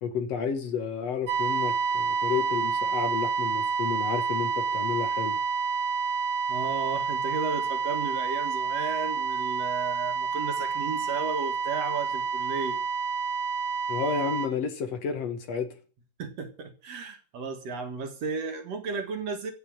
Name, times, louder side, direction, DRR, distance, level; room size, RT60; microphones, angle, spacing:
voice 1, 0.0-5.4 13.9-15.7, left 6 dB, 60° left, 2.5 m, -31 dB
sound 1, 1.3-14.5, right 5 dB, 80° right, 3.5 m, -29 dB
voice 2, 6.5-12.8 16.2-19.5, right 5 dB, 60° right, 2.7 m, -34 dB
15.5 x 5.4 x 8.8 m
omnidirectional pair, 3.3 m